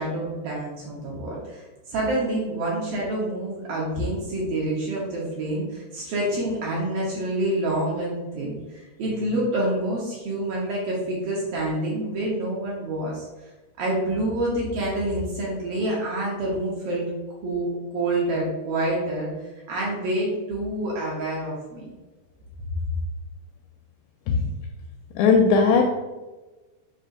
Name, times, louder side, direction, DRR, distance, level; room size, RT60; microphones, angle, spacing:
voice 1, 0.0-13.3 13.8-17.0 17.4-17.7 17.9-21.9, right 1 dB, 65° right, -5 dB, 2.4 m, -27 dB
voice 2, 25.2-25.8, left 5 dB, 85° left, 3 dB, 2.4 m, -17 dB
6.5 x 3.2 x 5.2 m, 1.2 s
omnidirectional pair, 5.3 m